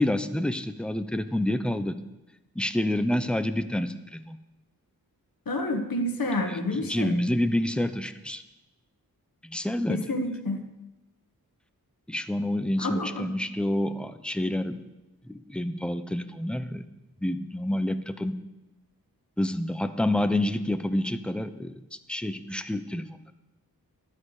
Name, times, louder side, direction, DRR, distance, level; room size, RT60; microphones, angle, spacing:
voice 1, 0.0-1.9 2.5-4.4 6.5-8.4 9.4-10.1 12.1-14.8 15.3-16.8 17.2-18.3 19.4-21.8 22.1-23.3, left 1 dB, 5° left, 10 dB, 0.7 m, -28 dB
voice 2, 5.5-7.1 9.9-10.6 12.8-13.3, left 1 dB, 65° left, 4 dB, 1.3 m, -29 dB
12.0 x 8.9 x 4.8 m, 0.98 s
cardioid pair, 50°, 37 cm